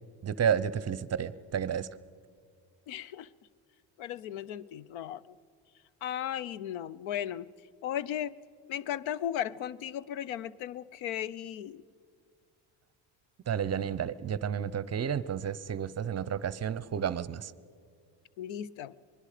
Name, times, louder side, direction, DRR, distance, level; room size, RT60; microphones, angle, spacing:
voice 1, 0.2-1.9 13.5-17.5, right 8 dB, 35° right, 18 dB, 0.7 m, -31 dB
voice 2, 2.9-3.3 4.0-5.2 6.0-7.5 7.8-8.3 8.7-11.8 18.4-18.9, left 10 dB, 80° left, 20 dB, 0.7 m, -36 dB
26.5 x 20.5 x 5.0 m, 2.1 s
cardioid pair, 95°, 46 cm